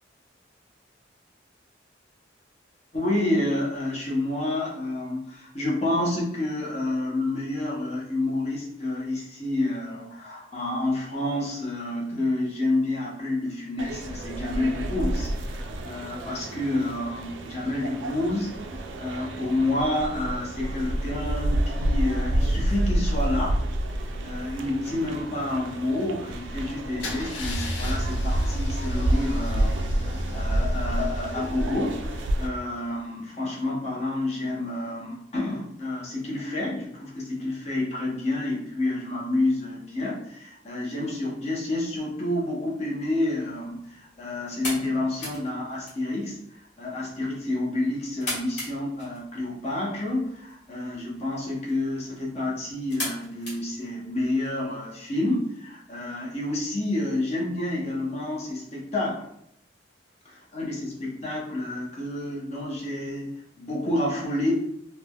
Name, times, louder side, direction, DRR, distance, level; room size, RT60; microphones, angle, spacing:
voice 1, 2.9-18.5 18.8-23.6 24.2-59.2 60.2-64.5, left 1 dB, 35° left, -3 dB, 0.6 m, -29 dB
sound 1, 13.8-32.5, right 1 dB, 80° right, 0.3 m, -29 dB
Car / Engine starting / Idling, 27.0-32.8, left 1 dB, 80° left, 0.5 m, -36 dB
sound 2, 43.1-54.5, left 1 dB, 65° left, 1.3 m, -40 dB
3.1 x 2.0 x 2.2 m, 0.74 s
head